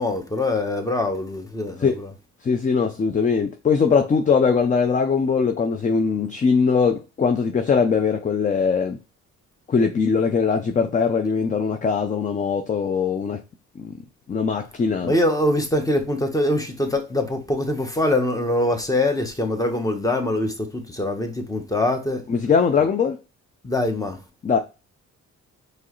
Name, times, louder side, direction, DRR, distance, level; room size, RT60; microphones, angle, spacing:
voice 1, 0.0-2.1 15.0-22.2 23.6-24.2, left 1 dB, 10° left, 1.0 m, -23 dB
voice 2, 2.4-9.0 9.7-13.4 13.8-13.9 14.3-15.1 22.3-23.2 24.4-24.6, left 5 dB, 25° left, 0.5 m, -21 dB
4.6 x 3.1 x 3.0 m
cardioid pair, 90°, 30 cm